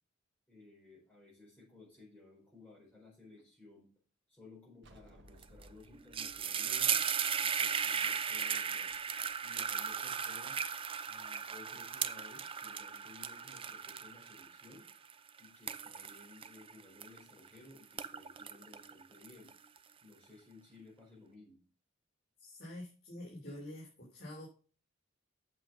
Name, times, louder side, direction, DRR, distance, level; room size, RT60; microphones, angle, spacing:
voice 1, 0.5-3.9 4.3-7.0 7.4-8.9 9.4-10.6 11.1-14.9 15.4-19.5 20.0-21.6, left 3 dB, 10° left, -6 dB, 4.6 m, -57 dB
sound 1, 4.8-8.3, equal, 65° right, 1.3 m, -61 dB
sound 2, 5.4-5.6 5.9-17.5 17.8-19.8, right 7 dB, 25° right, 0.5 m, -36 dB
voice 2, 22.4-24.5, left 1 dB, 50° left, -4 dB, 3.7 m, -47 dB
8.5 x 6.5 x 5.7 m, 0.37 s
head